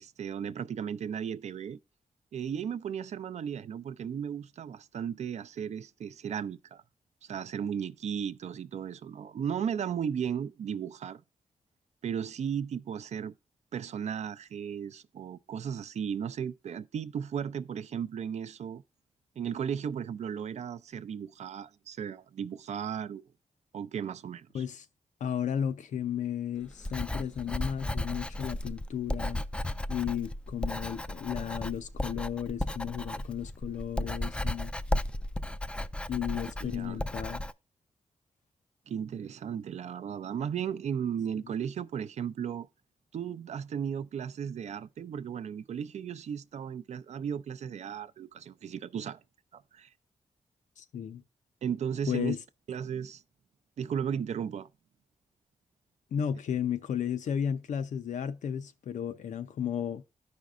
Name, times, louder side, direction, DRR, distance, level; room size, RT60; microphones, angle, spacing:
voice 1, 0.0-1.8 2.3-6.8 7.2-11.2 12.0-13.3 13.7-18.8 19.4-23.2 23.7-24.6 36.6-37.0 38.9-42.7 43.1-49.2 49.5-49.9 51.6-52.4 52.7-53.2 53.8-54.7, right 8 dB, 70° right, 0.4 m, -35 dB
voice 2, 24.5-24.9 25.2-29.4 29.9-34.7 36.1-37.4 50.8-51.2 52.1-52.4 56.1-60.0, left 9 dB, 85° left, 0.6 m, -34 dB
Writing, 26.7-37.5, left 1 dB, 10° left, 0.3 m, -34 dB
14.0 x 5.2 x 2.4 m
wide cardioid pair, 100°, 12 cm